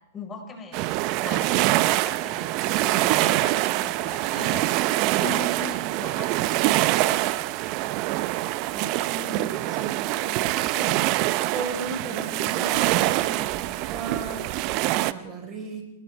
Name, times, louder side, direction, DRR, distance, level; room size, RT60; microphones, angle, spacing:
voice 1, 0.1-0.9 1.2-7.5, left 5 dB, 20° left, 4 dB, 5.1 m, -40 dB
sound 1, 0.7-15.1, right 17 dB, 45° right, 0.8 m, -24 dB
voice 2, 8.7-15.8, right 3 dB, 30° right, 4 dB, 4.8 m, -36 dB
29.0 x 19.5 x 4.6 m, 0.88 s
hypercardioid pair, 125°, 0 cm